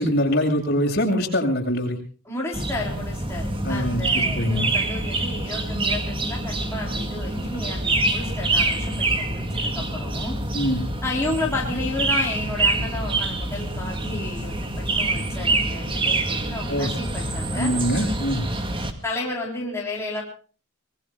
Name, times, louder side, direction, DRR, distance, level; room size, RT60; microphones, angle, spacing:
voice 1, 0.0-2.0 3.6-4.7 10.5-10.8 16.7-16.9 17.5-18.4, equal, 50° left, 2 dB, 7.3 m, -23 dB
voice 2, 2.3-10.4 11.0-17.7 19.0-20.2, left 2 dB, 15° left, -4 dB, 4.0 m, -32 dB
sound 1, 2.5-18.9, right 2 dB, 25° right, 2.2 m, -26 dB
25.5 x 21.5 x 2.4 m, 0.40 s
head